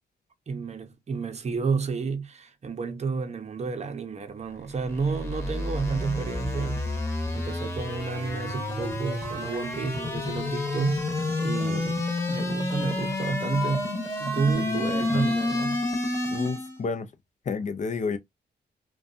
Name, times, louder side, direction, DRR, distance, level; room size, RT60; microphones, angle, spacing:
voice 1, 0.5-6.9 7.3-11.1 11.4-13.9 14.2-15.9, right 4 dB, 35° right, 0.7 m, -30 dB
sound 1, 4.6-16.8, left 2 dB, 15° left, 1.0 m, -29 dB
voice 2, 14.6-15.3 16.3-17.1 17.5-18.2, left 4 dB, 40° left, 0.5 m, -31 dB
2.6 x 2.2 x 2.4 m
cardioid pair, 75°, 19 cm